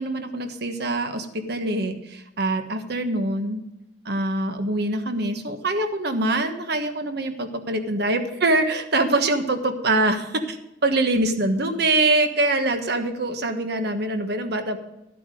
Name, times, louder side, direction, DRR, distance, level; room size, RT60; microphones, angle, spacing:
voice 1, 0.0-3.6 4.0-10.6 10.8-14.8, right 2 dB, 60° right, 6 dB, 1.4 m, -24 dB
13.5 x 8.4 x 5.2 m, 0.91 s
head